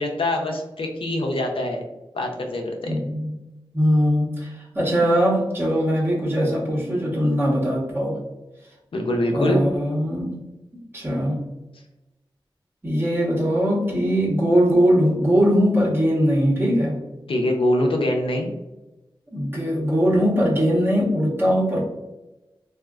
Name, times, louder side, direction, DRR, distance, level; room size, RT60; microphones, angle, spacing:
voice 1, 0.0-1.8 2.1-2.9 8.9-9.6 17.3-18.5, left 1 dB, 80° left, 1 dB, 0.6 m, -23 dB
voice 2, 2.8-3.3 3.7-8.2 9.3-10.3 10.9-11.4 12.8-17.0 19.3-21.9, equal, 25° right, -5 dB, 1.1 m, -21 dB
3.5 x 2.4 x 2.3 m, 1.0 s
wide cardioid pair, 85°, 9 cm